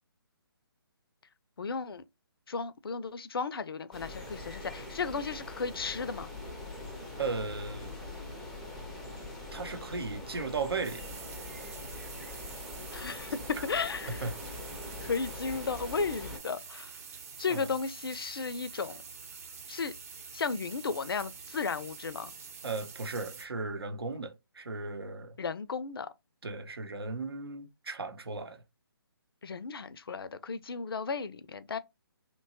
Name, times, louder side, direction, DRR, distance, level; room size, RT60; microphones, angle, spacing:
voice 1, 1.6-2.0 2.5-6.3 12.9-14.2 15.0-16.9 17.4-19.0 19.7-19.9 20.3-22.3 25.4-26.1 29.4-31.8, left 5 dB, 70° left, 0.4 m, -34 dB
sound 1, 3.9-16.4, left 2 dB, 5° left, 0.4 m, -43 dB
voice 2, 7.2-7.9 9.5-11.1 13.6-13.7 14.2-14.6 17.5-17.7 22.6-25.4 26.4-28.6, right 4 dB, 75° right, 0.7 m, -36 dB
sound 2, 10.8-23.5, right 5 dB, 40° right, 0.7 m, -47 dB
2.8 x 2.2 x 2.8 m
figure-of-eight pair, 145°, 13 cm